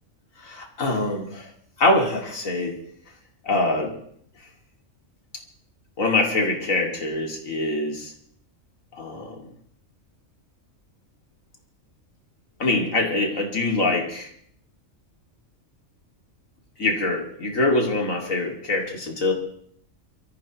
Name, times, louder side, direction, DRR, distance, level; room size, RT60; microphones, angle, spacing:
voice 1, 0.4-1.5 1.8-2.7 3.4-3.9 4.4-4.5 6.0-8.1 8.9-9.4 12.6-14.3 16.8-19.3, left 2 dB, 80° left, 1 dB, 2.8 m, -24 dB
24.0 x 14.5 x 3.0 m, 0.64 s
omnidirectional pair, 1.4 m